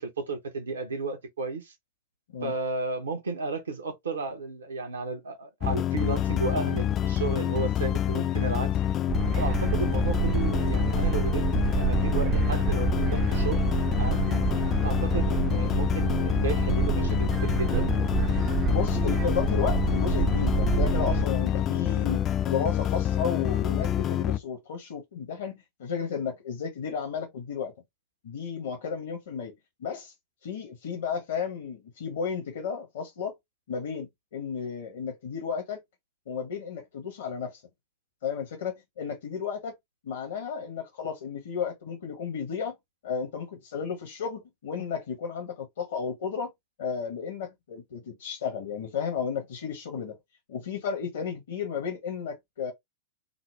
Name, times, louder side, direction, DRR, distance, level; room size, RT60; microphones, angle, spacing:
voice 1, 0.0-1.7 2.4-8.7 9.4-13.6 14.0-14.4 14.8-17.9, right 3 dB, 75° right, 0.9 m, -33 dB
sound 1, 5.6-24.4, left 11 dB, 30° left, 0.3 m, -27 dB
sound 2, 9.1-21.3, right 8 dB, 35° right, 0.5 m, -28 dB
voice 2, 18.4-27.7 28.2-29.5 29.8-30.1 30.4-33.4 33.7-35.8 36.3-37.6 38.2-39.7 40.0-42.8 43.0-46.5 46.8-50.2 50.5-52.7, left 6 dB, 65° left, 0.9 m, -33 dB
3.8 x 2.0 x 3.1 m
figure-of-eight pair, 95°, 0 cm